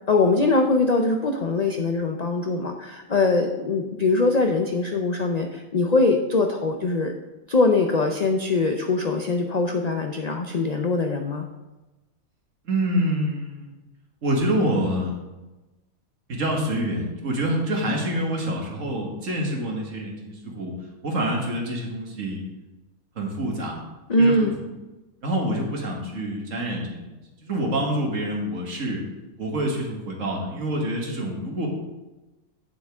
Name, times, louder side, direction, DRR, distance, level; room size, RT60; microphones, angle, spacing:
voice 1, 0.1-7.1 7.5-11.5 24.1-24.6, left 3 dB, 70° left, 4 dB, 0.4 m, -22 dB
voice 2, 12.7-13.7 14.2-15.1 16.3-20.7 21.0-22.4 23.2-23.8 24.2-24.5 25.2-27.0 27.4-29.0 29.4-31.7, right 1 dB, 60° right, 0 dB, 1.9 m, -26 dB
8.8 x 7.2 x 3.5 m, 1.1 s
omnidirectional pair, 1.5 m